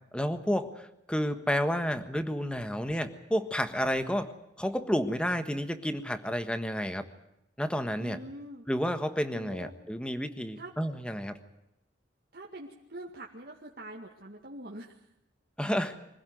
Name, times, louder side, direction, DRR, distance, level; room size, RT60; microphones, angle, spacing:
voice 1, 0.1-7.0 7.6-8.2 8.7-11.4 15.6-16.0, equal, 5° left, 9 dB, 1.4 m, -31 dB
voice 2, 8.0-8.7 9.3-9.8 10.6-10.7 12.3-15.0, right 1 dB, 55° right, -2 dB, 2.2 m, -44 dB
25.0 x 16.0 x 9.4 m, 0.83 s
head